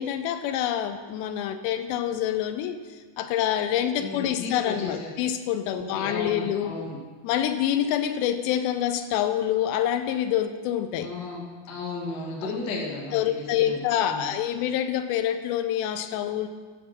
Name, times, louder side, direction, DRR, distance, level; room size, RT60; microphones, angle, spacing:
voice 1, 0.0-2.8 3.2-6.8 7.2-11.1 12.4-12.6 13.1-16.5, left 10 dB, 85° left, 9 dB, 2.3 m, -26 dB
voice 2, 4.0-5.1 5.7-7.0 11.0-14.2, left 3 dB, 50° left, -2 dB, 1.2 m, -35 dB
12.0 x 4.8 x 6.4 m, 1.5 s
omnidirectional pair, 4.4 m